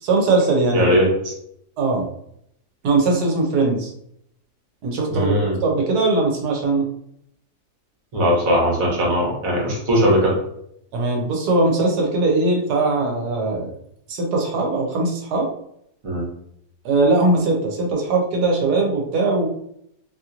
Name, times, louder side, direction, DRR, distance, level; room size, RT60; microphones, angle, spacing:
voice 1, 0.0-0.9 1.8-2.1 2.8-3.9 4.8-6.9 10.9-13.7 14.1-15.5 16.8-19.5, right 3 dB, 90° right, 0 dB, 1.3 m, -20 dB
voice 2, 0.7-1.3 5.1-5.6 8.1-10.4 16.0-16.3, equal, 60° right, -2 dB, 1.4 m, -19 dB
3.0 x 2.8 x 2.5 m, 0.73 s
omnidirectional pair, 1.7 m